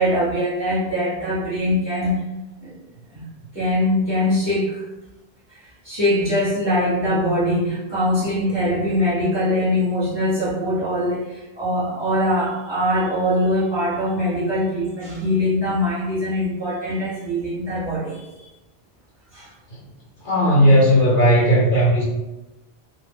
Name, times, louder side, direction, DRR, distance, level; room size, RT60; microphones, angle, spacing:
voice 1, 0.0-2.3 2.6-2.7 3.1-3.2 3.5-4.8 5.5-18.5 19.3-19.5, left 1 dB, 25° right, -9 dB, 0.8 m, -22 dB
voice 2, 20.2-22.0, equal, 55° left, -6 dB, 0.9 m, -15 dB
2.1 x 2.0 x 3.3 m, 1.0 s
omnidirectional pair, 1.1 m